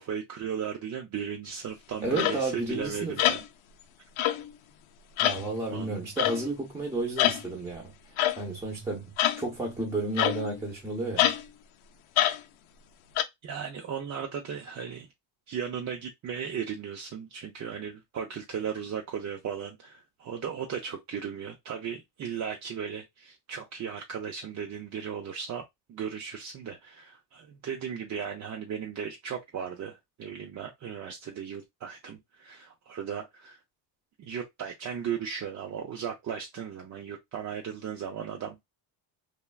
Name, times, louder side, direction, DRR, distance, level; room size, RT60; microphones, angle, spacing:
voice 1, 0.0-3.4 5.7-6.0 13.4-15.1 15.5-25.6 25.9-33.6 34.2-38.6, right 7 dB, 40° right, 0.5 m, -36 dB
voice 2, 2.0-3.2 5.2-7.9 8.4-9.1 9.4-11.3, right 2 dB, 5° right, 0.7 m, -32 dB
sound 1, 2.2-2.4 3.2-3.4 4.2-4.5 5.2-5.4 6.2-6.4 7.2-7.4 8.2-8.4 9.2-9.4 10.2-10.6 11.2-11.4 12.2-12.4 13.2-13.3, left 12 dB, 85° left, 0.6 m, -25 dB
3.4 x 2.2 x 2.2 m
cardioid pair, 125°, 47 cm